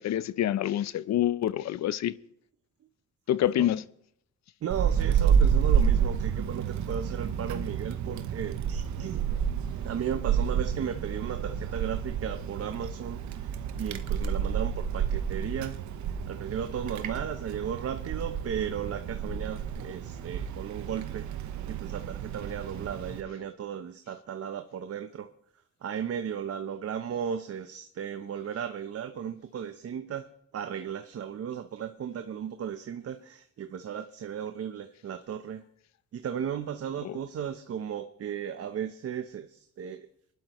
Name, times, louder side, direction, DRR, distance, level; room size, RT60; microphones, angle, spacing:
voice 1, 0.0-2.1 3.3-3.8 37.0-37.2, left 12 dB, 65° left, 0.6 m, -27 dB
voice 2, 4.6-9.3 9.8-15.8 16.3-21.3 21.7-25.3 25.8-35.6 36.1-40.1, right 8 dB, 50° right, 0.9 m, -35 dB
Wind, 4.7-23.2, right 7 dB, 70° right, 1.1 m, -30 dB
24.0 x 12.0 x 3.1 m
cardioid pair, 90°, 30 cm